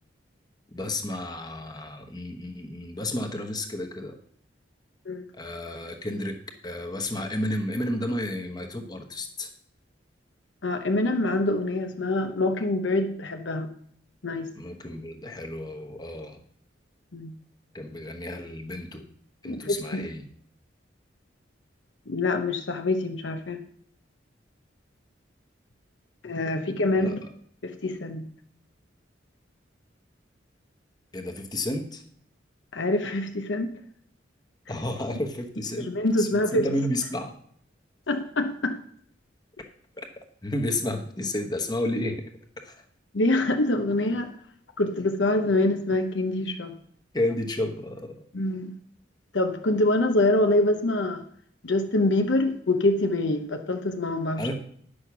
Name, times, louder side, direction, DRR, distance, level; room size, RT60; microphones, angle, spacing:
voice 1, 0.7-4.1 5.3-6.4 6.6-9.5 14.6-16.4 17.7-19.0 19.4-20.2 27.0-27.1 31.1-32.0 34.7-35.9 36.2-37.3 40.0-40.1 40.4-42.2 42.6-42.8 47.1-48.2 54.4-54.5, left 1 dB, 20° left, 5 dB, 1.1 m, -31 dB
voice 2, 10.6-13.7 14.2-14.5 17.1-17.3 19.4-20.0 22.1-23.6 26.2-27.2 27.6-28.3 32.7-33.7 35.7-36.7 38.1-38.8 43.1-44.3 44.8-46.7 48.3-48.7 49.3-51.2 51.6-54.5, left 2 dB, 75° left, 6 dB, 0.8 m, -25 dB
9.8 x 6.4 x 6.0 m, 0.63 s
head